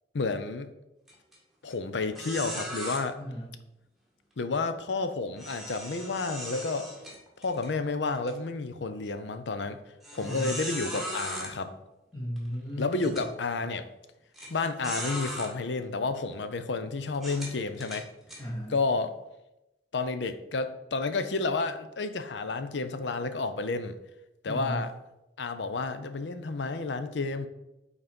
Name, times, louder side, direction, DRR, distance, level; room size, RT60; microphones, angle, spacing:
voice 1, 0.1-0.7 1.6-3.2 4.4-6.9 7.4-9.8 10.1-11.7 12.8-13.8 14.5-18.1 18.7-19.1 19.9-23.9 24.4-24.9 25.4-27.5, left 3 dB, 90° left, 10 dB, 0.6 m, -31 dB
sound 1, 1.1-1.3 1.7-1.8 2.1-3.0 5.4-7.7 8.1-8.3 8.9-9.0 10.0-11.5 12.4-12.5 13.0-13.3 14.3-14.5 14.8-15.5 16.2-16.3 17.1-18.4, equal, ahead, 1.5 m, -38 dB
voice 2, 3.2-3.5 10.2-10.6 12.1-13.3 18.4-18.7 24.4-24.9, equal, 25° left, -5 dB, 1.1 m, -35 dB
5.8 x 4.0 x 5.3 m, 0.92 s
head